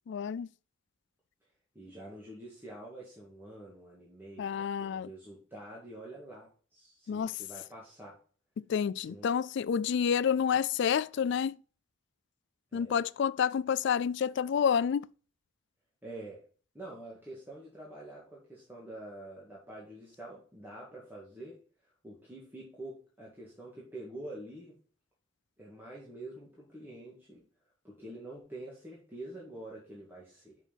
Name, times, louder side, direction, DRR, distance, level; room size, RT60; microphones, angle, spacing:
voice 1, 0.1-0.5 4.4-5.1 7.1-7.4 8.6-11.6 12.7-15.1, left 7 dB, 60° left, 0.3 m, -29 dB
voice 2, 1.7-8.2 9.1-9.3 12.7-13.0 16.0-16.5 16.7-21.6 22.0-24.8 25.6-27.4 27.8-30.6, right 1 dB, 10° right, 2.0 m, -47 dB
6.3 x 5.6 x 5.9 m
head